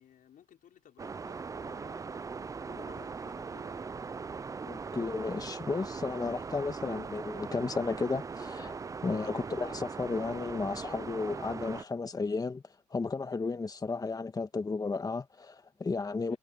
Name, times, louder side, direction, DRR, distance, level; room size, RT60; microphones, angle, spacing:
voice 1, 0.0-2.1 2.6-3.9 9.2-9.5 16.3-16.4, left 9 dB, 55° left, 5.3 m, -57 dB
sound 1, 1.0-11.8, right 5 dB, 20° right, 0.4 m, -40 dB
voice 2, 4.6-12.6 12.9-16.4, left 4 dB, 20° left, 1.6 m, -33 dB
cardioid pair, 110°, 17 cm